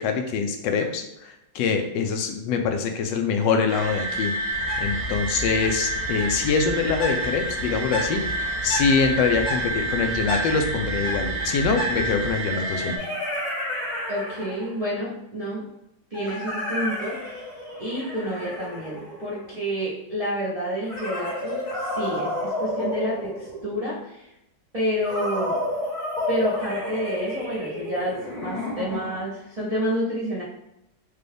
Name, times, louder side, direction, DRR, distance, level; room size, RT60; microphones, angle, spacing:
voice 1, 0.0-4.4 4.8-8.2 8.6-13.0, left 5 dB, 75° left, 5 dB, 1.2 m, -24 dB
sound 1, 3.7-13.0, right 2 dB, 90° right, 1.4 m, -29 dB
Bird, 4.5-12.3, equal, 40° left, 1.6 m, -33 dB
sound 2, 11.1-11.2 12.5-14.9 16.1-19.6 20.8-23.9 25.0-29.3, left 1 dB, 60° left, 1.7 m, -31 dB
voice 2, 14.1-15.6 16.1-17.4 17.8-24.3 24.7-25.6 26.3-30.4, equal, 70° right, -8 dB, 0.3 m, -29 dB
5.1 x 2.2 x 3.3 m, 0.86 s
omnidirectional pair, 2.0 m